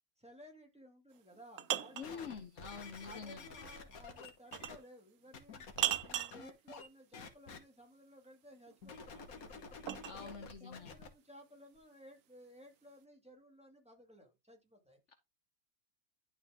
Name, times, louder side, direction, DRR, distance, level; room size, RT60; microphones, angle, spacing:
voice 1, 0.2-2.5 3.0-5.7 6.0-9.8 10.1-15.0, equal, 5° right, 2.0 m, -57 dB
sound 1, 1.1-2.1 4.5-4.9 5.8-6.4 8.7-10.2, right 12 dB, 75° right, 1.0 m, -37 dB
voice 2, 1.9-3.4 10.0-10.9 15.1-15.2, left 6 dB, 60° left, 1.1 m, -47 dB
sound 2, 2.0-4.8 5.3-6.9 7.1-7.6 8.8-11.1 11.8-11.9, left 4 dB, 85° left, 1.7 m, -50 dB
11.5 x 4.2 x 3.5 m
omnidirectional pair, 1.5 m